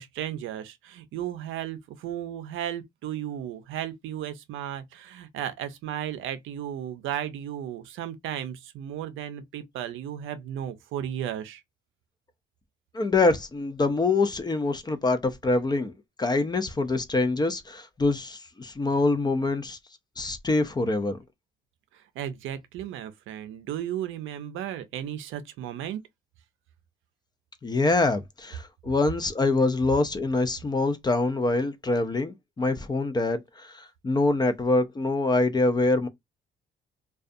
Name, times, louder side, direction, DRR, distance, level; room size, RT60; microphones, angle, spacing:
voice 1, 0.0-11.6 21.9-26.0, right 10 dB, 85° right, 0.5 m, -34 dB
voice 2, 12.9-15.9 16.2-19.8 20.2-21.2 27.6-36.1, left 2 dB, 20° left, 0.4 m, -25 dB
2.4 x 2.3 x 2.5 m
cardioid pair, 90°, 20 cm